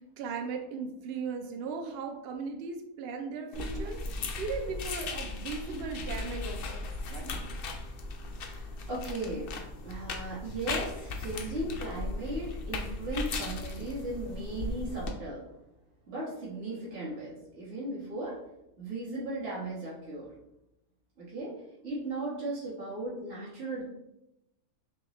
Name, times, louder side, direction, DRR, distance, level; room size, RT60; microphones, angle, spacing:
voice 1, 0.2-7.6, right 5 dB, 75° right, 3 dB, 0.5 m, -38 dB
sound 1, 3.5-15.1, left 3 dB, 75° left, 0.5 m, -37 dB
voice 2, 8.3-15.5 16.1-18.4 18.8-20.3 21.2-23.8, right 1 dB, 40° right, -7 dB, 1.6 m, -37 dB
5.4 x 2.3 x 3.0 m, 0.88 s
omnidirectional pair, 1.6 m